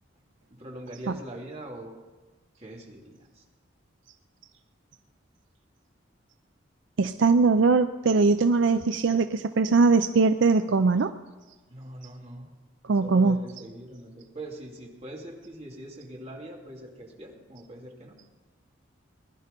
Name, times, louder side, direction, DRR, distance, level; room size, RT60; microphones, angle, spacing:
voice 1, 0.6-2.0 2.6-3.2 11.7-12.4 13.0-18.1, right 1 dB, 35° right, -1 dB, 2.6 m, -42 dB
voice 2, 7.0-11.1 12.9-13.4, right 4 dB, 70° right, 9 dB, 0.5 m, -21 dB
20.5 x 11.5 x 5.2 m, 1.2 s
head